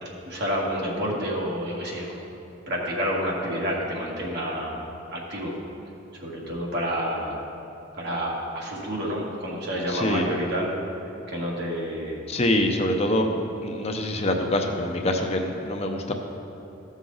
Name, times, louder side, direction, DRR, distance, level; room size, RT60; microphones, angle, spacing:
voice 1, 0.0-2.2 2.7-4.7 5.1-5.6 6.2-7.4 7.9-10.7 11.3-12.2 13.3-13.4, equal, 60° right, -3 dB, 1.9 m, -29 dB
voice 2, 9.9-10.3 12.3-13.3 13.6-16.1, left 1 dB, 35° left, 3 dB, 0.7 m, -25 dB
14.5 x 6.3 x 3.9 m, 2.9 s
head